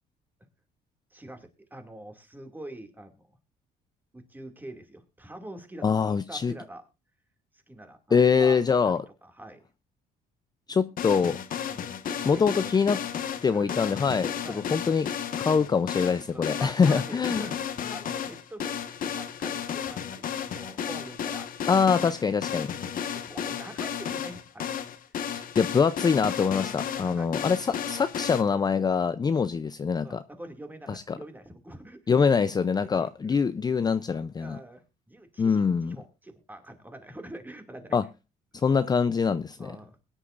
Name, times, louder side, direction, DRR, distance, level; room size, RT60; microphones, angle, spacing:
voice 1, 1.1-3.3 4.1-6.8 7.5-8.6 8.8-8.9 9.2-9.6 11.7-12.7 13.5-13.8 14.4-14.7 15.4-15.7 16.3-21.8 23.1-24.7 26.5-27.3 30.0-32.0 32.8-33.4 34.4-38.0 38.8-38.9 39.6-40.0, right 1 dB, 10° right, 2.3 m, -45 dB
voice 2, 5.8-6.5 8.1-9.0 10.7-11.4 12.2-13.0 13.4-15.1 15.4-17.5 21.7-22.8 25.3-30.2 30.9-31.2 32.1-34.6 35.4-36.0 37.9-38.0 38.5-39.7, left 6 dB, 25° left, 0.5 m, -24 dB
sound 1, 11.0-28.4, left 8 dB, 55° left, 1.4 m, -33 dB
21.5 x 9.9 x 2.5 m
cardioid pair, 110°, 17 cm